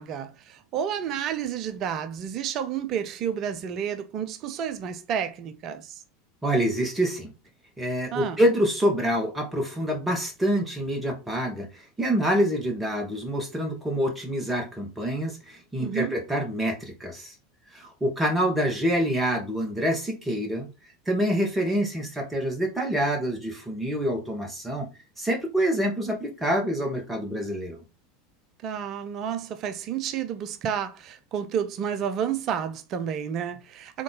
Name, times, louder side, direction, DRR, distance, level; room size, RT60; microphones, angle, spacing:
voice 1, 0.0-6.0 8.1-8.4 15.8-16.1 28.6-34.0, right 8 dB, 40° right, 0.5 m, -30 dB
voice 2, 6.4-7.3 7.8-17.3 17.7-20.7 21.1-24.9 25.2-27.8, equal, 10° right, 1.4 m, -26 dB
3.7 x 3.7 x 3.8 m
figure-of-eight pair, 80°, 0 cm